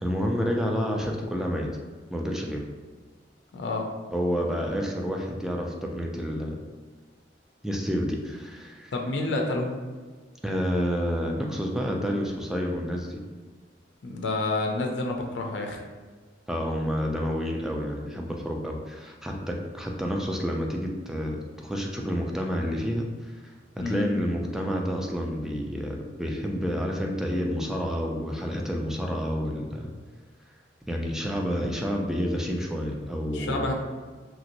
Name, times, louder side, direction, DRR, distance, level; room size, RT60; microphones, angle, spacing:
voice 1, 0.0-1.7 2.1-2.6 4.1-6.6 7.6-8.9 10.4-13.2 16.5-23.4 23.8-29.9 30.9-33.7, equal, 5° right, 0 dB, 0.3 m, -29 dB
voice 2, 3.5-3.9 8.9-9.8 14.0-15.8 23.8-24.0 33.3-33.7, left 2 dB, 75° left, 2 dB, 0.4 m, -29 dB
3.0 x 2.9 x 2.5 m, 1.4 s
head